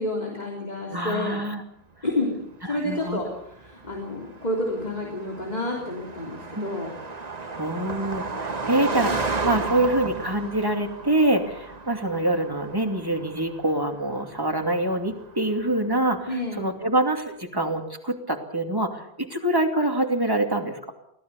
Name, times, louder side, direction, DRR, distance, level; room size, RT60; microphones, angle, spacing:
voice 1, 0.0-1.4 2.0-2.3 2.6-3.3 3.6-6.9 16.3-16.7, left 1 dB, 45° left, -1 dB, 3.6 m, -29 dB
voice 2, 0.9-1.6 2.7-3.2 6.6-6.7 7.5-20.9, right 1 dB, 20° right, 4 dB, 2.7 m, -25 dB
Car passing by, 2.6-16.3, right 3 dB, 40° right, 1.4 m, -34 dB
23.5 x 17.5 x 7.0 m, 0.75 s
omnidirectional pair, 1.0 m